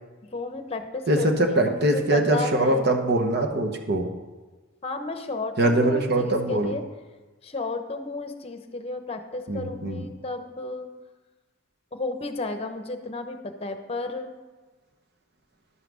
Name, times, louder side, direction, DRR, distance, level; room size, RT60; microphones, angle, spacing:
voice 1, 0.3-2.8 4.8-6.8 7.4-10.9 11.9-14.3, left 3 dB, 30° left, 6 dB, 0.9 m, -33 dB
voice 2, 1.1-4.1 5.6-6.7 9.5-10.1, right 1 dB, 55° right, 4 dB, 1.1 m, -22 dB
11.5 x 5.8 x 6.3 m, 1.3 s
head